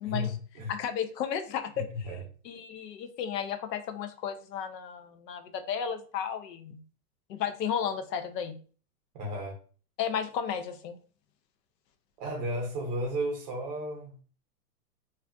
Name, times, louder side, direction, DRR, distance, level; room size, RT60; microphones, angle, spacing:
voice 1, 0.0-0.7 1.8-2.2 9.1-9.6 12.2-14.2, equal, 30° right, 0 dB, 0.7 m, -34 dB
voice 2, 0.7-2.1 2.4-6.8 7.3-8.6 10.0-11.0, left 8 dB, 80° left, 9 dB, 0.6 m, -33 dB
2.5 x 2.4 x 2.2 m, 0.40 s
supercardioid pair, 165°, 49 cm